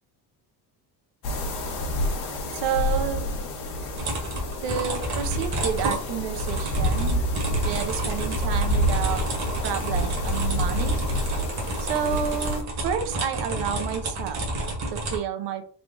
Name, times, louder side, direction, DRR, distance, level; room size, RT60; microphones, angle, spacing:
sound 1, 1.2-12.6, equal, 65° left, 1.1 m, -28 dB
voice 1, 2.5-3.3 4.6-7.2 7.6-9.2 9.6-11.0 11.8-14.4 14.9-15.6, right 8 dB, 80° right, 7 dB, 0.8 m, -30 dB
sound 2, 4.0-15.2, right 2 dB, 40° right, 1.2 m, -31 dB
sound 3, 4.7-11.2, left 5 dB, 45° left, 1.4 m, -48 dB
3.6 x 2.3 x 3.7 m, 0.43 s
cardioid pair, 165°, 41 cm